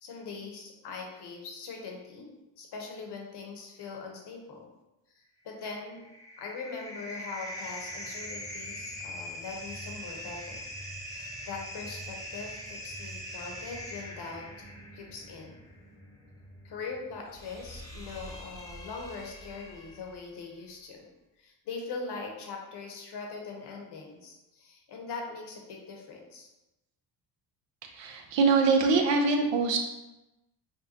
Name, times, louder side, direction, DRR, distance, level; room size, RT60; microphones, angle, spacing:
voice 1, 0.0-2.3 2.6-4.7 5.1-6.0 6.4-10.6 11.1-14.5 14.9-15.6 16.6-21.1 21.4-26.5, left 4 dB, 65° left, 1 dB, 1.0 m, -41 dB
sound 1, 5.8-20.3, equal, 10° left, 0.8 m, -42 dB
voice 2, 27.9-29.8, right 4 dB, 80° right, 3 dB, 0.7 m, -24 dB
5.4 x 2.2 x 2.8 m, 0.98 s
cardioid pair, 85°, 43 cm